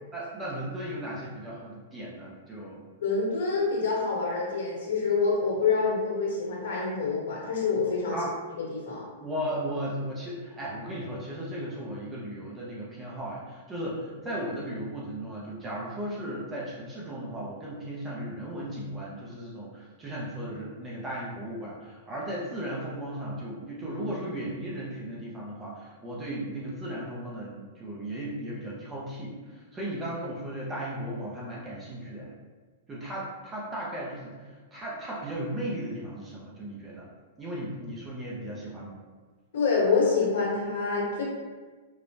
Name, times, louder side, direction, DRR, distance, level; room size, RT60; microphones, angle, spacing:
voice 1, 0.1-2.8 8.1-8.3 9.2-32.3 32.9-37.1 37.4-38.9, right 1 dB, 10° right, -5 dB, 0.5 m, -36 dB
voice 2, 3.0-8.2 8.7-9.0 39.5-41.2, left 4 dB, 80° left, -4 dB, 1.3 m, -26 dB
4.7 x 2.1 x 2.6 m, 1.4 s
supercardioid pair, 180°, 0 cm